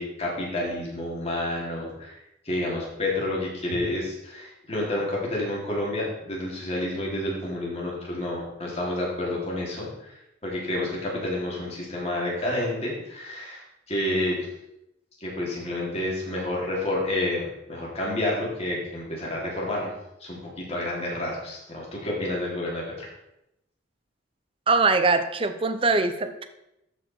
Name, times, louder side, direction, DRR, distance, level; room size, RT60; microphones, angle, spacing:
voice 1, 0.0-2.2 2.4-10.1 10.4-14.4 15.2-19.9 20.2-23.1, left 1 dB, 30° left, -4 dB, 2.7 m, -29 dB
voice 2, 24.7-26.4, right 3 dB, 25° right, 9 dB, 0.6 m, -22 dB
13.0 x 4.8 x 4.4 m, 0.86 s
head